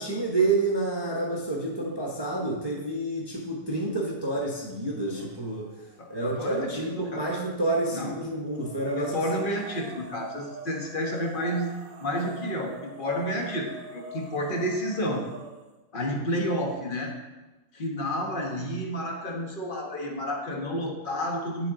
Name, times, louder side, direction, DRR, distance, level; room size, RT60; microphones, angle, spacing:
voice 1, 0.0-5.7 6.1-9.2, right 2 dB, 20° right, -3 dB, 1.0 m, -28 dB
sound 1, 5.0-5.6 6.0-7.8 8.5-15.7, right 4 dB, 90° right, 1.4 m, -45 dB
voice 2, 6.0-7.3 7.9-8.1 8.9-11.7 12.0-15.2 15.9-17.1 17.7-21.7, equal, 40° left, 1 dB, 1.3 m, -30 dB
9.4 x 6.9 x 3.7 m, 1.1 s
omnidirectional pair, 1.4 m